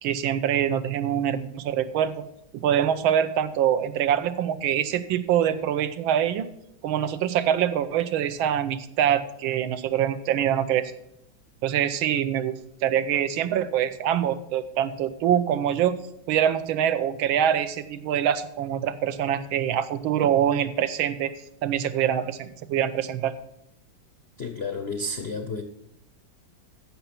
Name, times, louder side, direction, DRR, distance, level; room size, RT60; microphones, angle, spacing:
voice 1, 0.0-2.2 2.6-6.5 6.8-10.9 11.6-16.0 16.3-21.3 21.6-23.3, right 10 dB, 85° right, 11 dB, 1.5 m, -24 dB
voice 2, 24.4-25.6, left 3 dB, 70° left, 7 dB, 0.6 m, -31 dB
14.5 x 5.8 x 5.8 m, 0.81 s
omnidirectional pair, 2.2 m